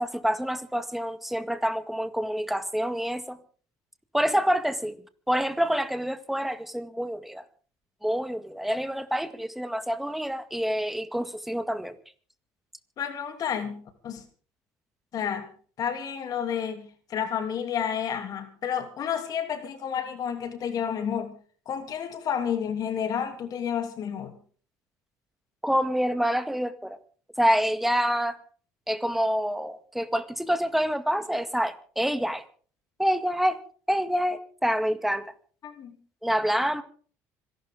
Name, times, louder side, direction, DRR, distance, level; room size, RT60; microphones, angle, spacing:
voice 1, 0.0-3.4 4.1-5.0 5.3-7.4 8.0-11.9 25.6-27.0 27.4-28.4 28.9-32.4 33.0-33.6 33.9-35.3 36.2-36.8, equal, 5° right, 1.9 m, -27 dB
voice 2, 13.0-14.2 15.1-15.5 15.8-21.3 21.7-24.3 35.6-36.0, left 8 dB, 55° left, 2.9 m, -30 dB
26.0 x 12.0 x 3.7 m
supercardioid pair, 85°, 8 cm